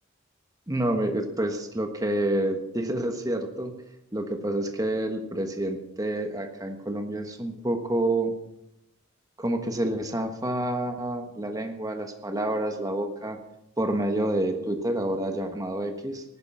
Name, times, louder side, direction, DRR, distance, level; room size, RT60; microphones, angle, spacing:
voice 1, 0.7-3.7 4.1-8.3 9.4-13.4 13.8-16.2, right 1 dB, 15° right, 5 dB, 1.2 m, -28 dB
15.0 x 11.5 x 5.6 m, 0.85 s
head